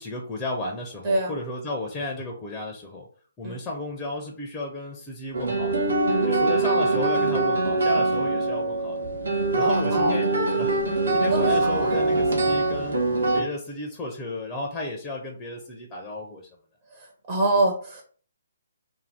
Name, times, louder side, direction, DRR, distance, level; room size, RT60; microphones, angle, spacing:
voice 1, 0.0-3.1 3.4-5.9 6.2-10.3 10.6-13.0 13.3-16.4, left 2 dB, 15° left, 0 dB, 0.5 m, -34 dB
sound 1, 5.3-13.4, right 2 dB, 70° right, 1.0 m, -23 dB
voice 2, 9.6-10.1 11.2-11.9 16.9-18.0, right 2 dB, 35° right, -2 dB, 0.7 m, -26 dB
2.7 x 2.3 x 3.3 m, 0.43 s
figure-of-eight pair, 135°, 0 cm